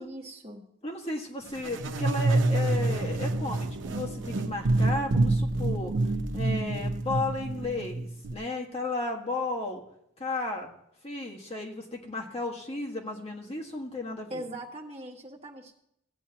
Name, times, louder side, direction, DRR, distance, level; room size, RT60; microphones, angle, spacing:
voice 1, 0.0-0.6 14.3-15.7, right 1 dB, 35° right, -2 dB, 1.7 m, -40 dB
voice 2, 0.8-5.9 6.3-9.8 10.2-10.7 11.0-14.4, left 2 dB, 35° left, 0 dB, 1.6 m, -34 dB
sound 1, 1.6-8.3, right 2 dB, 80° right, 0.7 m, -27 dB
16.5 x 9.1 x 2.9 m, 0.75 s
head